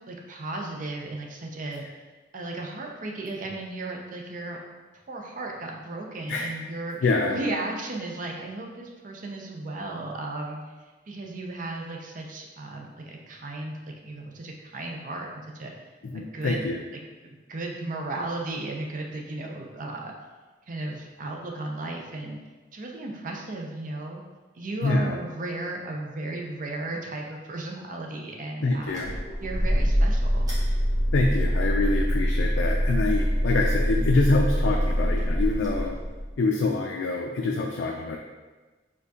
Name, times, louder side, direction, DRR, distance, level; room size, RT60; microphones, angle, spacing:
voice 1, 0.1-1.9 2.3-4.6 5.1-7.0 7.3-10.6 11.1-13.8 14.0-15.7 16.1-16.6 17.2-20.1 20.7-22.4 22.7-24.2 24.5-29.0 29.4-30.5, right 2 dB, 45° right, 1 dB, 0.5 m, -35 dB
voice 2, 7.0-7.4 16.1-16.8 24.8-25.2 28.6-29.1 31.1-36.0 36.4-38.2, left 3 dB, 90° left, 1 dB, 0.4 m, -25 dB
sound 1, 28.9-36.3, equal, 20° right, 1.2 m, -24 dB
4.3 x 3.6 x 2.8 m, 1.3 s
head